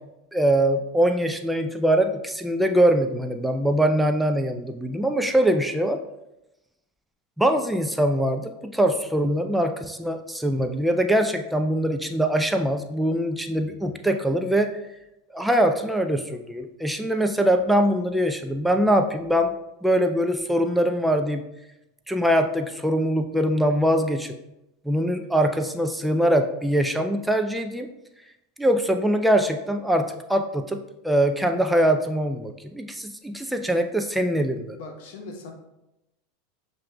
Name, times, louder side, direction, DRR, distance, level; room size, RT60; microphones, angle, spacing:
voice 1, 0.3-6.0 7.4-14.7 15.3-19.5 19.8-21.4 22.1-24.4 24.9-27.9 28.6-30.8 31.0-34.8, right 1 dB, 5° right, 5 dB, 0.3 m, -23 dB
voice 2, 34.7-35.5, left 3 dB, 65° left, 3 dB, 0.9 m, -40 dB
7.3 x 2.6 x 2.2 m, 0.90 s
hypercardioid pair, 95°, 0 cm